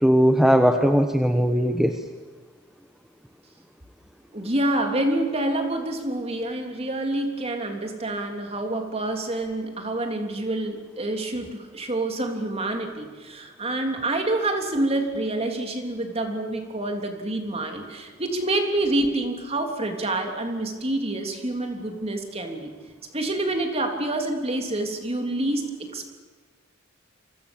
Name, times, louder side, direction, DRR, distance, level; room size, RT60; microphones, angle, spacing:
voice 1, 0.0-2.0, equal, ahead, 5 dB, 1.1 m, -19 dB
voice 2, 4.3-22.7 23.1-26.1, right 2 dB, 30° right, 4 dB, 3.4 m, -27 dB
29.5 x 24.5 x 7.3 m, 1.4 s
head